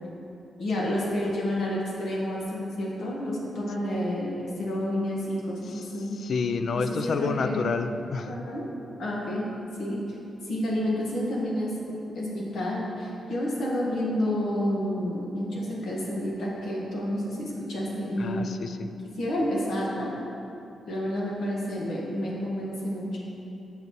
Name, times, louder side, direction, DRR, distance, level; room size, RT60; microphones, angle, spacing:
voice 1, 0.6-6.2 6.7-7.7 8.2-8.7 9.0-9.5 9.8-10.0 10.4-18.5 19.0-20.1 20.9-23.2, equal, 75° left, -4 dB, 1.5 m, -30 dB
voice 2, 6.1-8.3 18.2-18.9, left 4 dB, 50° left, 9 dB, 0.3 m, -29 dB
8.0 x 6.5 x 3.1 m, 2.9 s
wide cardioid pair, 160°, 0 cm